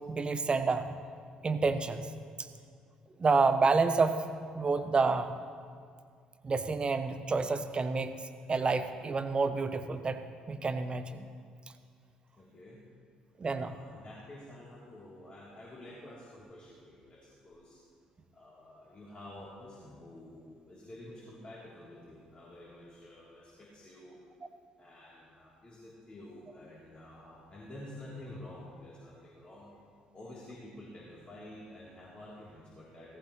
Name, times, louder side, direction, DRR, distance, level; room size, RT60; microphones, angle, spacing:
voice 1, 0.1-1.0 1.4-2.1 3.2-4.2 4.5-5.3 6.4-8.1 8.5-10.2 10.5-11.2 13.4-13.7, right 4 dB, 30° right, 10 dB, 1.0 m, -28 dB
voice 2, 12.4-12.8 13.5-17.8 18.3-24.2 24.8-29.8 30.1-33.2, left 1 dB, 30° left, -7 dB, 3.5 m, -49 dB
17.5 x 16.0 x 3.3 m, 2.1 s
figure-of-eight pair, 50°, 3 cm